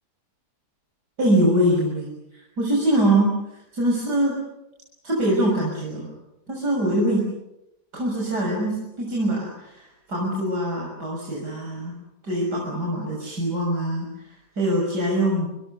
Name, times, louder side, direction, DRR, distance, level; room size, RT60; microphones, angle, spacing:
voice 1, 1.2-4.4 5.0-6.1 6.5-7.3 7.9-11.9 12.2-15.5, right 1 dB, 75° right, -2 dB, 7.0 m, -23 dB
27.5 x 26.5 x 6.8 m, 0.88 s
omnidirectional pair, 1.8 m